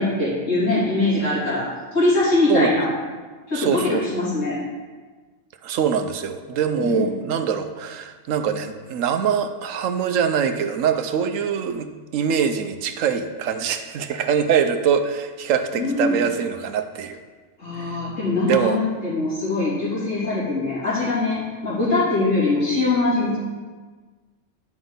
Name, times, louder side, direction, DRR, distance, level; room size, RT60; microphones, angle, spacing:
voice 1, 0.0-2.9 3.5-4.6 6.8-7.1 15.7-16.2 17.6-23.4, left 2 dB, 70° left, -9 dB, 3.5 m, -22 dB
voice 2, 3.5-4.2 5.6-17.2 17.8-18.0 18.4-18.8, right 7 dB, 80° right, 8 dB, 1.0 m, -23 dB
9.8 x 6.1 x 3.9 m, 1.4 s
omnidirectional pair, 1.3 m